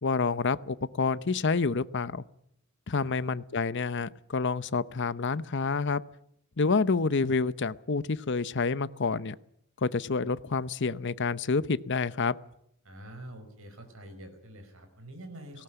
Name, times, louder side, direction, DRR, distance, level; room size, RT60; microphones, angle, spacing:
voice 1, 0.0-2.2 2.9-6.0 6.6-9.4 9.8-12.4, left 4 dB, 55° left, 16 dB, 0.8 m, -28 dB
voice 2, 12.8-15.6, right 1 dB, 65° right, 6 dB, 5.0 m, -46 dB
18.5 x 18.0 x 9.0 m, 0.71 s
head